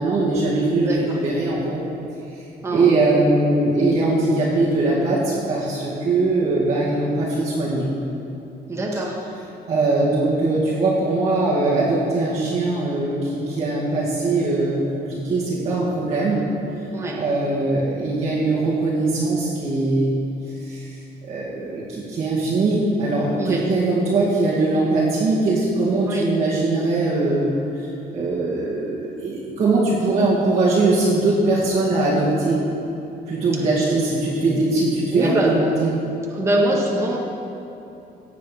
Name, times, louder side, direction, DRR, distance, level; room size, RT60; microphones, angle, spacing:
voice 1, 0.0-1.8 2.3-7.9 9.7-16.4 17.2-20.1 20.4-21.0 21.2-32.6 33.3-35.9, right 2 dB, 40° right, -8 dB, 2.1 m, -21 dB
voice 2, 8.7-9.2 16.9-17.2 23.4-23.6 26.1-26.2 35.1-35.5 36.3-37.2, right 1 dB, 15° right, -3 dB, 1.6 m, -23 dB
17.0 x 8.4 x 5.1 m, 2.9 s
cardioid pair, 170°, 17 cm